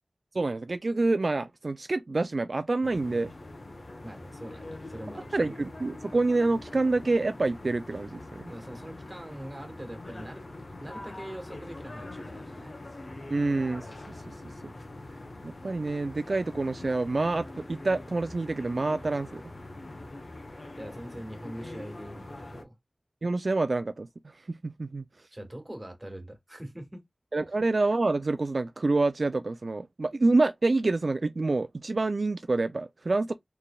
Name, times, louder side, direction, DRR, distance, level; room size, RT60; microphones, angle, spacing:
voice 1, 0.3-3.3 5.3-8.5 13.3-14.3 14.6-14.7 15.4-19.4 23.2-25.3 27.3-33.3, right 3 dB, 70° right, 0.3 m, -27 dB
sound 1, 2.8-22.6, left 2 dB, 65° left, 1.0 m, -43 dB
voice 2, 4.0-5.4 8.4-10.4 10.8-12.8 20.7-22.8 25.3-27.0, right 1 dB, 25° right, 1.7 m, -43 dB
4.1 x 3.3 x 2.2 m
wide cardioid pair, 50°, 0 cm